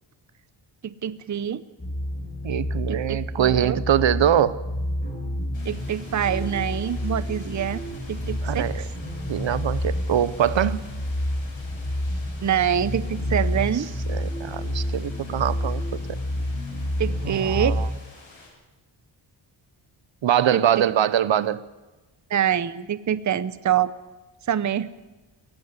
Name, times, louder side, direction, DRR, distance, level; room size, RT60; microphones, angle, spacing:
voice 1, 0.8-1.6 2.9-3.8 5.6-7.8 8.1-8.9 12.4-13.9 17.0-17.8 20.5-20.9 22.3-23.9 24.5-24.9, right 9 dB, 40° right, 15 dB, 0.7 m, -25 dB
sound 1, 1.8-17.9, left 1 dB, 20° left, 6.8 m, -29 dB
voice 2, 2.4-4.6 8.4-8.8 9.3-10.9 14.1-15.8 16.1-16.2 17.2-17.9 20.2-21.6, right 10 dB, 70° right, 17 dB, 0.8 m, -23 dB
sound 2, 5.5-18.5, left 3 dB, 75° left, 7.0 m, -49 dB
sound 3, 5.7-13.4, left 3 dB, 50° left, 4.8 m, -46 dB
17.5 x 16.0 x 9.5 m, 1.1 s
wide cardioid pair, 145°, 47 cm